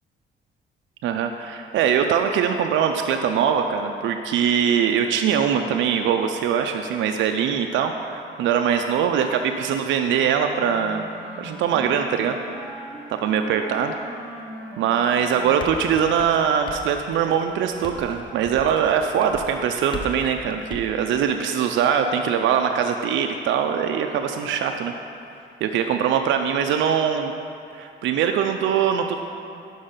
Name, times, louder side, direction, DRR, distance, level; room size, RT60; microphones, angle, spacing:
voice 1, 1.0-11.1 11.4-12.8 13.1-13.9 14.8-24.9 25.6-27.3 27.7-29.2, right 8 dB, 75° right, 5 dB, 0.4 m, -22 dB
Wind instrument woodwind instrument, 9.9-17.3, equal, 5° right, 1.0 m, -40 dB
sound 1, 15.3-20.9, left 2 dB, 25° left, 0.6 m, -39 dB
5.4 x 5.1 x 5.6 m, 2.6 s
cardioid pair, 90°, 20 cm